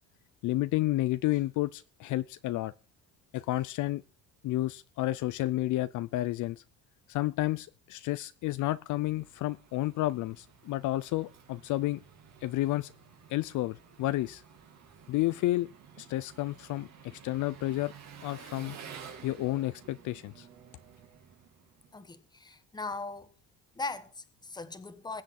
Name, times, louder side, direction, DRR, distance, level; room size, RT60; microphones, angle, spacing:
voice 1, 0.4-2.7 3.3-4.0 4.4-6.6 7.1-12.0 12.4-12.9 13.3-14.4 15.1-15.7 16.0-17.9 18.2-18.8 19.2-20.5, left 16 dB, 60° left, 0.5 m, -31 dB
Engine, 8.5-22.1, right 7 dB, 50° right, 3.1 m, -52 dB
voice 2, 21.9-23.3 23.7-25.2, left 3 dB, 10° left, 1.2 m, -39 dB
21.5 x 8.0 x 4.2 m
cardioid pair, 135°, 34 cm